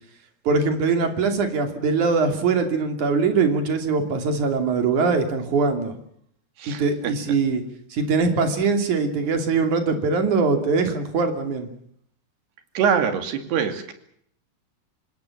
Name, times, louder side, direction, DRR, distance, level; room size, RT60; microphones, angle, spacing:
voice 1, 0.5-5.9 6.7-7.6 7.9-11.7, right 4 dB, 50° right, 6 dB, 4.0 m, -22 dB
voice 2, 12.8-13.9, right 7 dB, 80° right, 7 dB, 4.5 m, -23 dB
26.0 x 18.5 x 7.3 m, 0.68 s
omnidirectional pair, 4.7 m